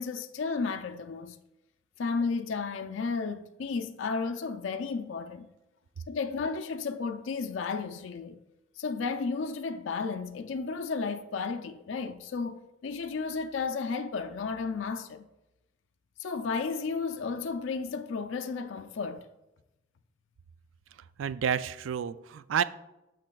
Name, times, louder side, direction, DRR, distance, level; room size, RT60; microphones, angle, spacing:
voice 1, 0.0-1.4 2.0-5.5 6.1-8.4 8.8-15.3 16.2-19.3, left 4 dB, 70° left, 0.4 m, -33 dB
voice 2, 21.2-22.6, right 8 dB, 75° right, 0.3 m, -29 dB
11.5 x 6.5 x 2.3 m
head